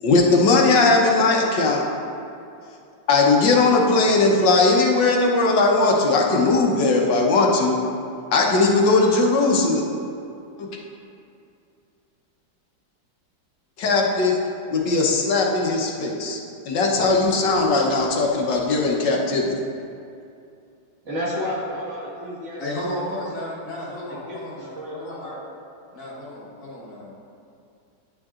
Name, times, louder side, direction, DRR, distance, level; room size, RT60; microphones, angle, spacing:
voice 1, 0.0-1.8 3.1-7.8 8.3-9.8 13.8-14.4 14.7-16.4 16.7-19.5, left 3 dB, 80° left, -1 dB, 1.6 m, -19 dB
voice 2, 21.1-22.6 22.9-23.5 23.9-24.0 24.3-25.4, equal, 45° right, -6 dB, 1.8 m, -32 dB
voice 3, 22.6-25.4 25.9-27.1, left 1 dB, 60° left, -6 dB, 2.0 m, -33 dB
10.5 x 9.1 x 2.4 m, 2.5 s
omnidirectional pair, 1.9 m